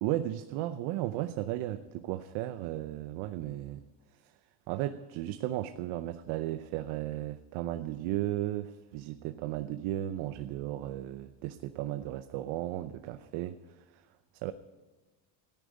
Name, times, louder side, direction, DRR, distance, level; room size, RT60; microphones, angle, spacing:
voice 1, 0.0-3.8 4.2-4.3 4.7-14.0 14.4-14.5, right 14 dB, 80° right, 11 dB, 0.8 m, -35 dB
14.0 x 10.5 x 9.5 m, 1.2 s
supercardioid pair, 95°, 46 cm